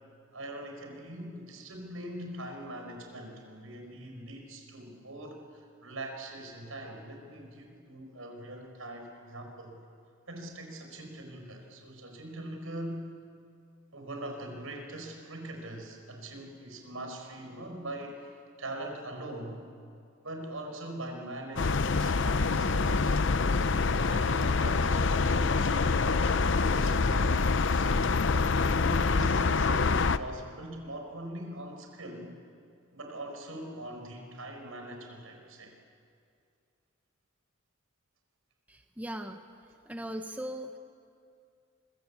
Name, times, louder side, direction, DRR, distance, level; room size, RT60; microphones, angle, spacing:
voice 1, 0.3-9.8 10.3-13.1 13.9-19.6 20.2-23.2 23.8-28.2 28.7-32.3 32.9-35.7, right 1 dB, 80° right, 4 dB, 5.2 m, -42 dB
sound 1, 21.6-30.2, left 4 dB, 60° left, 0.7 m, -26 dB
voice 2, 38.7-39.4 39.9-40.8, equal, 5° right, 5 dB, 1.0 m, -38 dB
25.0 x 23.0 x 8.4 m, 2.4 s
head